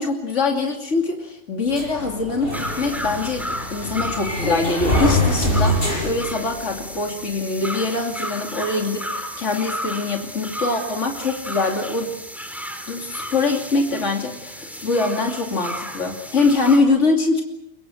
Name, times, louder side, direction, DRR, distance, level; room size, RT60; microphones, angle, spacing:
voice 1, 0.0-12.1 12.9-17.4, left 3 dB, 70° left, 2 dB, 3.0 m, -23 dB
sound 1, 1.7-7.0, left 1 dB, 50° left, 8.1 m, -24 dB
sound 2, 2.5-16.8, equal, ahead, 3.2 m, -33 dB
24.0 x 23.5 x 7.7 m, 0.84 s
omnidirectional pair, 1.3 m